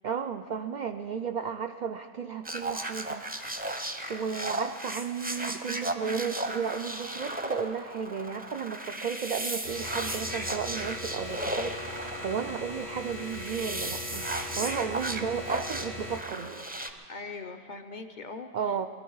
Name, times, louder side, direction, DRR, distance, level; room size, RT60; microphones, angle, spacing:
voice 1, 0.0-3.3 4.1-14.3 14.5-16.7 18.5-18.9, right 6 dB, 70° right, 7 dB, 0.4 m, -34 dB
sound 1, 2.5-16.9, right 1 dB, 10° right, 0.5 m, -35 dB
sound 2, 9.6-16.2, left 2 dB, 75° left, 2.0 m, -40 dB
voice 2, 17.1-18.9, left 4 dB, 50° left, 7 dB, 0.7 m, -41 dB
22.5 x 13.0 x 4.7 m, 2.3 s
omnidirectional pair, 1.3 m